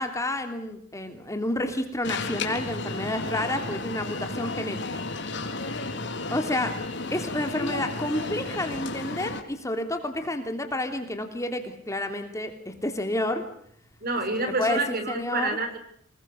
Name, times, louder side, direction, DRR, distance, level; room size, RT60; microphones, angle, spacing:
voice 1, 0.0-4.8 6.3-6.7 7.1-13.4 14.6-15.6, left 1 dB, 15° left, 6 dB, 3.1 m, -30 dB
Alarm, 2.0-9.4, left 3 dB, 60° left, 3.9 m, -33 dB
voice 2, 14.0-15.8, right 2 dB, 50° right, 7 dB, 6.6 m, -28 dB
28.0 x 21.0 x 6.5 m, 0.66 s
head